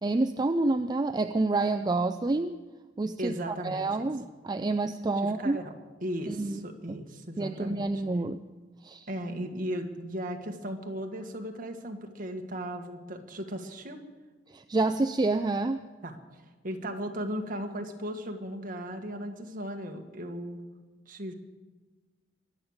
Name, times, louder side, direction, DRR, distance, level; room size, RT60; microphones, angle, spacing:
voice 1, 0.0-2.6 3.0-5.6 6.3-6.6 6.9-7.0 7.4-8.4 8.8-9.1 14.5-15.8, right 2 dB, 20° right, 8 dB, 0.4 m, -28 dB
voice 2, 3.2-3.8 5.2-5.7 6.0-7.9 9.1-14.0 16.0-16.2 16.6-20.6 21.1-21.3, equal, 50° right, 4 dB, 1.7 m, -36 dB
23.0 x 8.7 x 6.5 m, 1.3 s
head